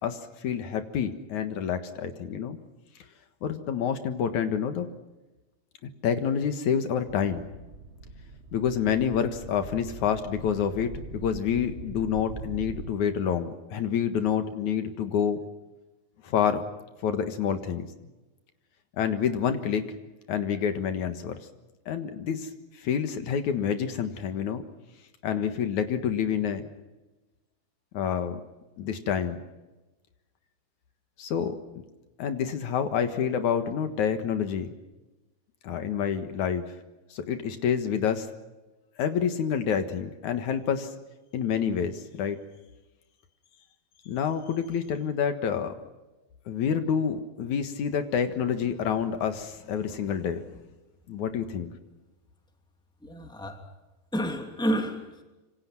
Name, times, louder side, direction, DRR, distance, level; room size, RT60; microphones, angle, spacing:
voice 1, 0.0-2.6 3.4-4.9 6.0-7.4 8.5-15.4 16.2-16.7 17.0-17.9 19.0-19.9 20.3-21.4 21.9-22.5 22.8-24.6 25.2-26.6 27.9-28.4 28.8-29.4 31.2-31.6 32.2-34.7 35.6-36.6 37.1-38.3 39.0-40.9 41.3-42.4 44.1-45.7 46.5-50.4 51.1-51.7, left 7 dB, 75° left, 8 dB, 2.9 m, -28 dB
sound 1, 7.0-12.9, right 3 dB, 25° right, 1.6 m, -42 dB
voice 2, 53.0-53.7 54.1-55.2, equal, ahead, 4 dB, 2.6 m, -30 dB
26.5 x 26.0 x 6.0 m, 1.1 s
omnidirectional pair, 3.5 m